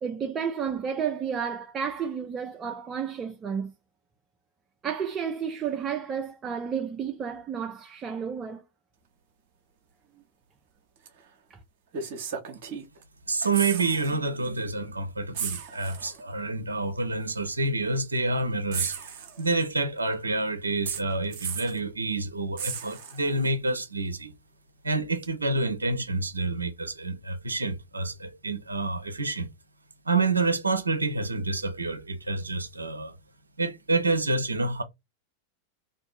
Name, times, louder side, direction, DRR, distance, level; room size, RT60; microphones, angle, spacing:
voice 1, 0.0-3.7 4.8-8.6 11.5-11.6, right 7 dB, 25° right, 0.4 m, -31 dB
sound 1, 11.1-11.2 11.9-13.0 13.3-14.2 14.5-14.6 15.3-16.2 17.2-17.3 18.7-19.8 20.9-21.8 22.6-23.5 25.2-25.3, right 7 dB, 50° right, 0.8 m, -35 dB
voice 2, 13.3-19.0 19.4-24.3 24.8-29.5 30.1-33.1 33.6-34.8, right 3 dB, 80° right, 0.5 m, -28 dB
2.7 x 2.6 x 3.7 m
figure-of-eight pair, 90°, 0 cm